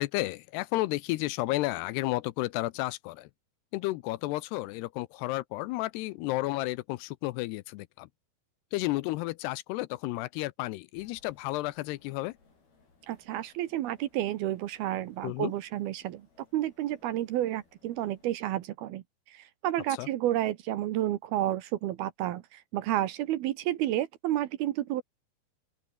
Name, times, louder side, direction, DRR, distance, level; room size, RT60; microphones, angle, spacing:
voice 1, 0.0-3.3 3.7-8.1 8.7-12.3 15.2-15.5 20.0-20.1, left 19 dB, 85° left, 2.7 m, -32 dB
sound 1, 10.9-18.3, left 4 dB, 65° left, 9.6 m, -65 dB
voice 2, 13.1-16.2 16.5-19.0 19.3-25.0, right 13 dB, 70° right, 2.8 m, -31 dB
open air
omnidirectional pair, 4.9 m